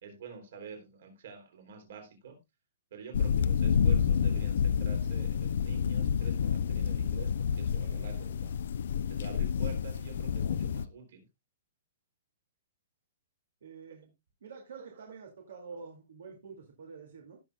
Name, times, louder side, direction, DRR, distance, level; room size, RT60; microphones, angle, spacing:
voice 1, 0.0-2.4 2.9-8.6 9.1-11.2 14.8-15.2 15.5-15.7, right 6 dB, 55° right, 4 dB, 3.2 m, -47 dB
sound 1, 3.1-10.8, left 7 dB, 60° left, 0.5 m, -29 dB
voice 2, 13.6-14.1 14.4-17.4, right 5 dB, 70° right, 2 dB, 2.4 m, -47 dB
17.0 x 6.3 x 2.3 m, 0.21 s
hypercardioid pair, 175°, 0 cm